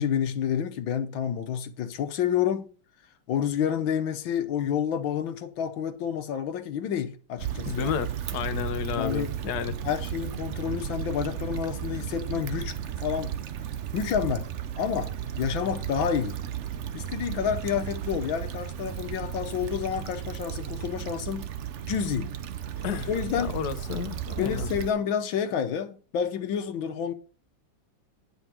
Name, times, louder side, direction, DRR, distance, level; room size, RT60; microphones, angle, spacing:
voice 1, 0.0-2.7 3.3-7.9 8.9-9.4 9.8-13.3 13.9-14.5 14.8-16.4 16.9-21.5 21.9-22.3 23.1-23.6 24.4-27.1, left 8 dB, 85° left, 1.7 m, -29 dB
Stream / Traffic noise roadway noise / Trickle dribble, 7.4-24.9, right 10 dB, 85° right, 0.6 m, -34 dB
voice 2, 7.7-9.8 22.8-24.7, left 8 dB, 60° left, 1.3 m, -32 dB
9.6 x 5.6 x 5.9 m
omnidirectional pair, 2.1 m